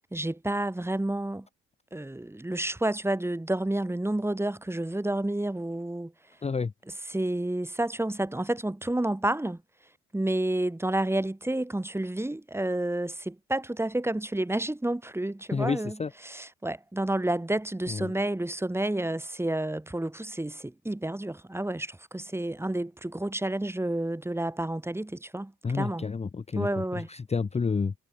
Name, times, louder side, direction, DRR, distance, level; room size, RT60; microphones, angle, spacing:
voice 1, 0.1-1.5 1.9-6.1 7.1-9.6 10.1-16.0 16.2-26.1 26.6-27.1, right 1 dB, 10° right, 1.8 m, -30 dB
voice 2, 6.4-6.7 15.5-16.1 17.9-18.1 25.6-26.7 26.9-27.9, left 5 dB, 20° left, 0.8 m, -29 dB
cardioid pair, 90°, 30 cm